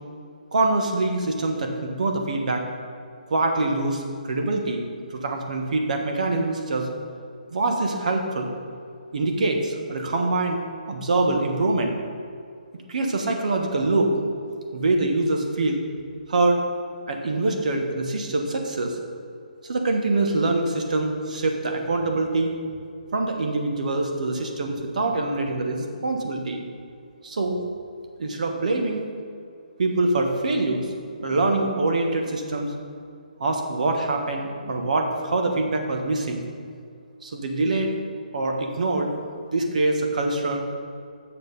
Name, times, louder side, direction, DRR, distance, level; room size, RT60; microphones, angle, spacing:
voice 1, 0.5-2.6 3.3-4.8 5.1-6.9 7.5-8.5 9.1-11.9 12.9-14.1 14.7-15.8 16.3-16.6 17.1-19.0 19.6-22.5 23.1-26.6 27.2-27.6 28.2-29.0 29.8-30.9 31.2-32.7 33.4-36.4 37.2-37.9 38.3-39.1 39.5-40.6, right 2 dB, 60° right, 3 dB, 1.4 m, -24 dB
8.6 x 6.6 x 5.3 m, 2.3 s
hypercardioid pair, 165°, 5 cm